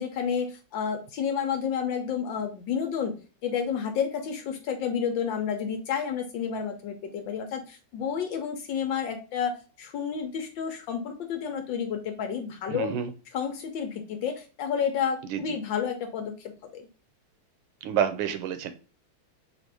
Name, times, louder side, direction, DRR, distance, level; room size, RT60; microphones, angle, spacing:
voice 1, 0.0-3.1 3.4-12.9 13.3-16.9, left 7 dB, 70° left, 5 dB, 1.3 m, -30 dB
voice 2, 12.7-13.1 15.2-15.6 17.8-18.7, right 8 dB, 75° right, 9 dB, 1.5 m, -29 dB
4.3 x 2.5 x 4.5 m, 0.35 s
omnidirectional pair, 2.4 m